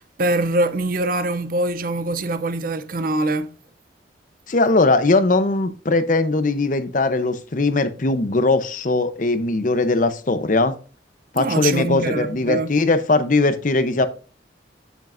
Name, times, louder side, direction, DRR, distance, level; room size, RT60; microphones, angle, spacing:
voice 1, 0.0-3.5 11.3-12.7, right 2 dB, 50° right, 0.6 m, -23 dB
voice 2, 4.5-10.7 11.3-14.1, left 3 dB, 45° left, 0.7 m, -20 dB
9.1 x 8.2 x 2.5 m
head